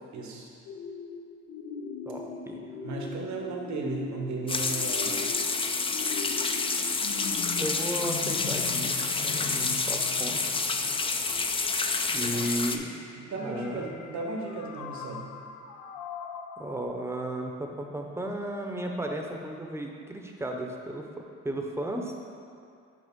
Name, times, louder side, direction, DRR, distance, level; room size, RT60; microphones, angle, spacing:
voice 1, 0.1-0.5 2.8-5.3 12.2-12.5 13.1-15.3, right 3 dB, 70° right, 0 dB, 1.1 m, -35 dB
sound 1, 0.7-16.8, left 5 dB, 85° left, 0.6 m, -41 dB
voice 2, 2.1-2.6 7.6-10.6 12.1-13.0 13.4-13.9 16.6-21.0 21.4-22.1, right 1 dB, 10° right, 1 dB, 0.7 m, -34 dB
sound 2, 4.5-12.8, left 4 dB, 20° left, 0.3 m, -28 dB
6.5 x 5.2 x 3.6 m, 2.5 s
cardioid pair, 90°, 30 cm